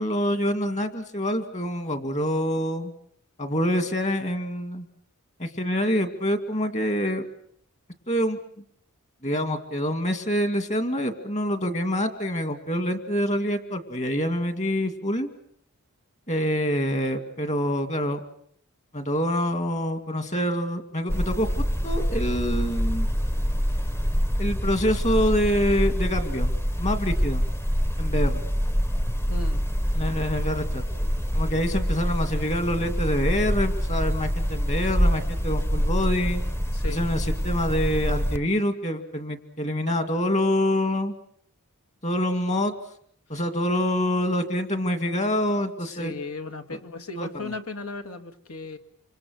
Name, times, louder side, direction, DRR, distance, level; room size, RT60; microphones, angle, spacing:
voice 1, 0.0-2.9 3.4-4.9 5.4-7.3 8.1-8.4 9.2-15.3 16.3-18.2 18.9-21.5 21.8-23.1 24.4-26.5 26.8-27.4 28.0-28.4 29.9-30.8 31.3-36.4 36.9-41.1 42.0-42.7 43.3-46.1 47.2-47.5, equal, 30° left, 8 dB, 2.4 m, -26 dB
sound 1, 21.1-38.4, equal, 10° left, 1.0 m, -26 dB
voice 2, 29.3-29.6 36.7-37.1 45.8-48.8, left 3 dB, 70° left, 7 dB, 2.0 m, -36 dB
27.0 x 26.0 x 6.5 m, 0.65 s
head